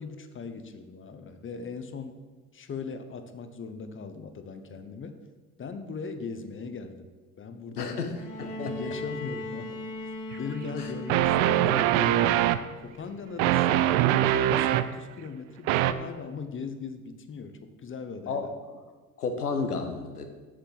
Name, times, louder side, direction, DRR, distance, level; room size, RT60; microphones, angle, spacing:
voice 1, 0.0-2.2 2.5-5.2 5.6-7.1 7.4-8.0 8.6-12.4 12.8-13.9 14.3-18.5, left 5 dB, 25° left, 8 dB, 1.0 m, -39 dB
voice 2, 7.8-8.1 8.4-8.7 10.8-10.9 18.3-18.5 19.2-20.3, left 4 dB, 90° left, 6 dB, 1.2 m, -31 dB
Bowed string instrument, 8.1-12.2 13.4-13.5, left 1 dB, 50° left, 2.3 m, -38 dB
sound 1, 10.3-10.4 11.1-12.6 13.4-14.9 15.7-15.9, right 12 dB, 60° right, 0.6 m, -22 dB
7.4 x 6.6 x 7.5 m, 1.4 s
hypercardioid pair, 70°, 44 cm